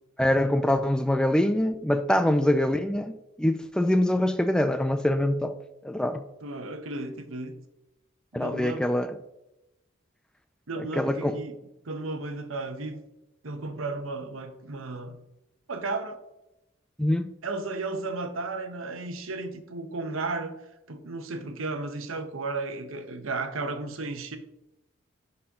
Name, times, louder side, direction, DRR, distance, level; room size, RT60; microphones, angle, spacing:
voice 1, 0.2-5.5 5.8-6.2 8.3-9.1 10.8-11.4 17.0-17.3, left 1 dB, 5° left, 9 dB, 0.3 m, -24 dB
voice 2, 2.2-2.6 6.4-7.5 8.3-9.0 10.7-11.6 11.8-13.0 13.4-15.2 15.7-16.2 17.4-20.5 20.9-24.4, right 3 dB, 85° right, 8 dB, 1.0 m, -34 dB
11.0 x 4.4 x 3.7 m, 0.91 s
head